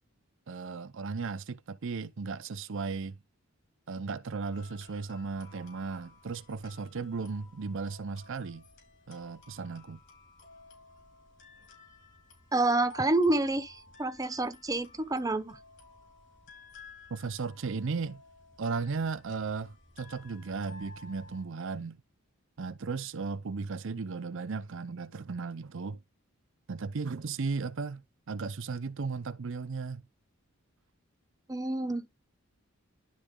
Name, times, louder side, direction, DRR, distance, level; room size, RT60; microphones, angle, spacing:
voice 1, 0.5-3.2 3.9-8.6 9.1-10.0 17.1-18.2 18.6-22.0 22.6-26.0 26.7-30.0, right 4 dB, 60° right, 0.6 m, -36 dB
sound 1, 4.5-21.4, left 3 dB, 55° left, 4.4 m, -55 dB
voice 2, 12.5-15.6 31.5-32.1, right 2 dB, 15° right, 0.8 m, -28 dB
12.0 x 4.0 x 3.7 m
head